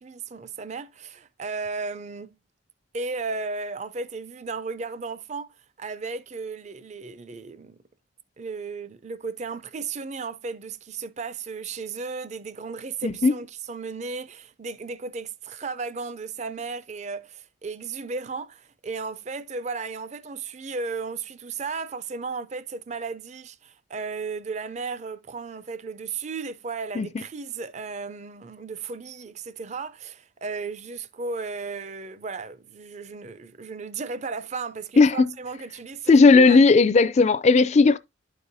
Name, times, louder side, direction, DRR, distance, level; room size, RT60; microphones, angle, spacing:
voice 1, 0.0-2.3 2.9-7.8 8.4-36.6, right 4 dB, 35° right, 0.5 m, -35 dB
voice 2, 13.0-13.3 27.0-27.1 35.0-35.3 36.1-38.0, left 4 dB, 35° left, 0.4 m, -16 dB
12.0 x 4.7 x 2.6 m
head